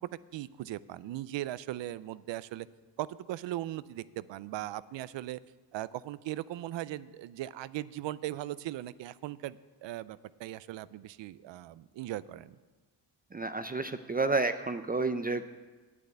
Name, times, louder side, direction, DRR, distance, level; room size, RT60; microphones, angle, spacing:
voice 1, 0.0-2.7 3.0-5.4 5.7-12.5, right 14 dB, 85° right, 18 dB, 0.5 m, -39 dB
voice 2, 13.3-15.5, right 3 dB, 20° right, 9 dB, 0.4 m, -30 dB
9.1 x 8.3 x 7.9 m, 1.3 s
cardioid pair, 80°, 43 cm